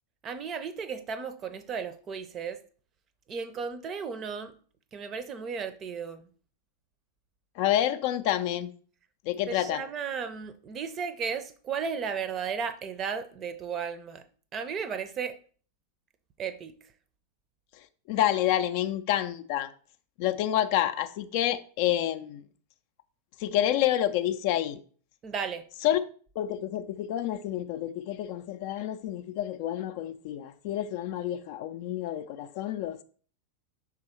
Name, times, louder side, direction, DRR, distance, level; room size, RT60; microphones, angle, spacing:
voice 1, 0.2-2.6 3.3-4.5 4.9-6.3 9.5-14.2 14.5-15.4 16.4-16.7 25.2-25.6, right 6 dB, 30° right, 0.6 m, -34 dB
voice 2, 7.6-8.7 9.3-9.8 18.1-19.7 20.2-22.4 23.4-24.8 25.8-26.0 26.4-33.0, left 12 dB, 45° left, 0.4 m, -28 dB
6.0 x 3.7 x 4.3 m
figure-of-eight pair, 90°, 0 cm